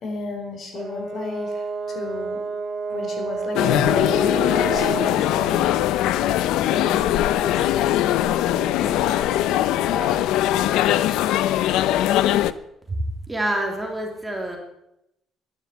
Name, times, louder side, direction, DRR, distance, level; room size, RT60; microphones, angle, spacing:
voice 1, 0.0-2.4 2.9-5.9 6.7-10.2, left 3 dB, 50° left, 3 dB, 4.3 m, -34 dB
Brass instrument, 0.7-5.2, right 4 dB, 35° right, 2.8 m, -29 dB
sound 1, 3.5-12.5, left 13 dB, 85° left, 0.6 m, -21 dB
voice 2, 13.3-14.6, right 1 dB, 10° right, 1 dB, 3.1 m, -27 dB
11.5 x 11.0 x 8.5 m, 0.83 s
cardioid pair, 125°, 0 cm